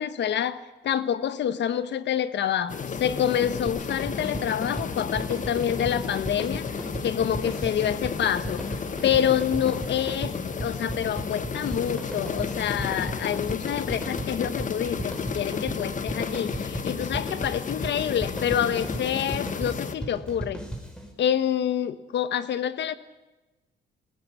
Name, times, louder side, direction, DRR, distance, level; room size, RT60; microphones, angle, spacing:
voice 1, 0.0-8.6 9.0-20.6 21.2-23.0, left 9 dB, 70° left, 13 dB, 1.3 m, -27 dB
sound 1, 2.7-19.9, left 6 dB, 45° left, 1.4 m, -33 dB
sound 2, 3.7-21.1, right 1 dB, 5° left, 5.5 m, -36 dB
19.5 x 18.5 x 8.4 m, 1.1 s
cardioid pair, 85°, 19 cm